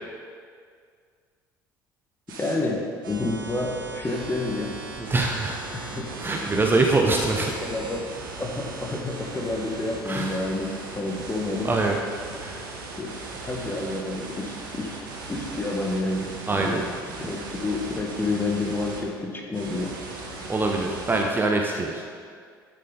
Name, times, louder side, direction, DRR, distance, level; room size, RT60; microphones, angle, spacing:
sound 1, 2.3-2.5 3.0-19.0 19.5-21.2, right 3 dB, 70° right, 1.5 m, -38 dB
voice 1, 2.4-4.7 5.7-6.0 6.4-6.6 7.6-11.7 13.0-13.1 13.5-15.0 15.3-16.8 17.2-19.9, left 2 dB, 20° left, 0 dB, 1.6 m, -29 dB
voice 2, 5.0-5.6 6.2-7.5 10.1-10.4 11.6-12.0 12.4-12.6 16.5-16.8 20.5-22.0, right 3 dB, 20° right, 1 dB, 0.8 m, -24 dB
11.5 x 6.8 x 4.0 m, 2.1 s
figure-of-eight pair, 60°, 11 cm